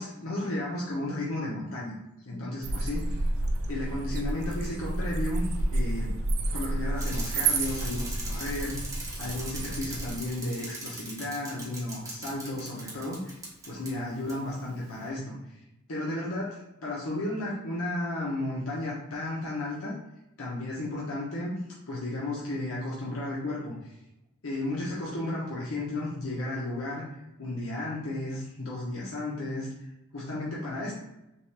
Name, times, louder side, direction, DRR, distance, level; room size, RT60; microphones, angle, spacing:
voice 1, 0.0-2.0 2.2-3.3 3.7-6.1 6.5-8.8 9.2-15.6 15.9-19.9 20.4-21.6 21.9-23.9 24.4-27.1 27.4-30.9, left 1 dB, 65° left, -5 dB, 0.9 m, -33 dB
sound 1, 2.6-10.2, right 2 dB, 70° right, 0.6 m, -30 dB
Bicycle, 7.0-13.9 14.3-14.4, right 2 dB, 15° right, 1.1 m, -40 dB
5.7 x 2.4 x 3.4 m, 0.92 s
head